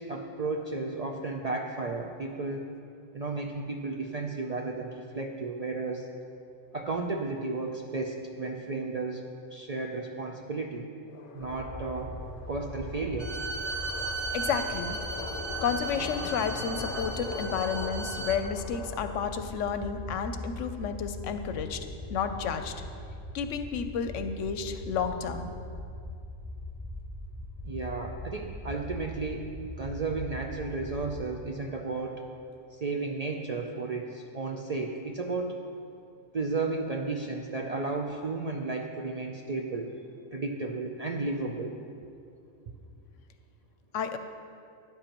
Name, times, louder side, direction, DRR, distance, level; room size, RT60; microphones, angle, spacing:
voice 1, 0.0-2.7 3.1-6.1 6.7-10.9 11.3-12.2 12.5-13.3 27.6-29.5 29.8-32.2 32.7-35.6 36.3-40.1 40.3-41.8, right 3 dB, 80° right, 2 dB, 0.3 m, -33 dB
sound 1, 11.1-19.3, left 4 dB, 50° left, 0.8 m, -41 dB
sound 2, 11.4-31.2, left 1 dB, ahead, 0.7 m, -41 dB
Bowed string instrument, 13.2-18.4, right 3 dB, 50° right, 0.8 m, -36 dB
voice 2, 14.3-15.0 15.6-22.7 23.3-25.5 43.9-44.2, left 6 dB, 75° left, 9 dB, 0.9 m, -31 dB
13.0 x 10.0 x 3.0 m, 2.4 s
omnidirectional pair, 1.4 m